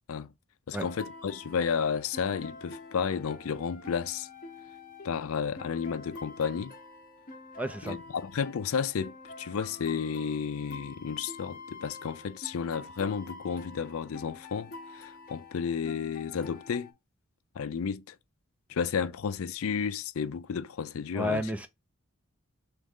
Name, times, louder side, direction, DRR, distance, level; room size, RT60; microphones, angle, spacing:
voice 1, 0.7-4.3 5.0-6.7 7.9-16.9 17.6-18.2 18.7-21.4, left 6 dB, 75° left, 0.4 m, -32 dB
sound 1, 0.7-16.9, left 3 dB, 40° left, 0.7 m, -47 dB
voice 2, 7.6-8.0 21.1-21.7, equal, 5° right, 0.4 m, -31 dB
3.7 x 3.1 x 3.6 m
head